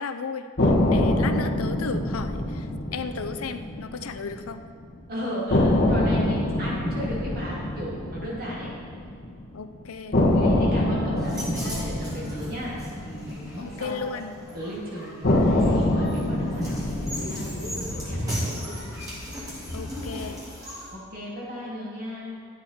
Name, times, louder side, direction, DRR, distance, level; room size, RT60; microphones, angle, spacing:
voice 1, 0.0-4.6 9.5-10.2 13.6-14.3 19.7-20.4, left 5 dB, 80° left, 9 dB, 0.6 m, -34 dB
sound 1, 0.6-4.7 4.9-5.0 5.5-9.6 10.1-14.5 15.2-19.6, left 1 dB, 45° left, 1.5 m, -25 dB
voice 2, 5.1-8.8 10.1-14.1 14.5-18.6 20.9-22.4, equal, 45° right, -6 dB, 2.8 m, -35 dB
sound 2, 11.2-20.9, equal, 15° right, 3.2 m, -36 dB
13.0 x 8.2 x 4.3 m, 2.2 s
head